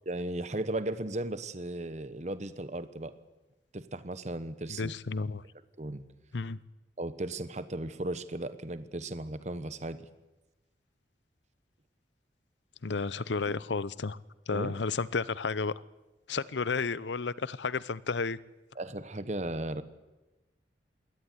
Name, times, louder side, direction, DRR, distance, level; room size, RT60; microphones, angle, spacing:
voice 1, 0.0-3.1 3.7-4.9 5.8-6.0 7.0-10.1 14.5-14.7 18.7-19.8, right 1 dB, 40° right, 1.2 m, -36 dB
voice 2, 4.7-5.4 6.3-6.6 12.8-14.2 14.5-15.7 16.3-18.4, left 4 dB, 85° left, 0.7 m, -32 dB
21.5 x 17.5 x 9.6 m
head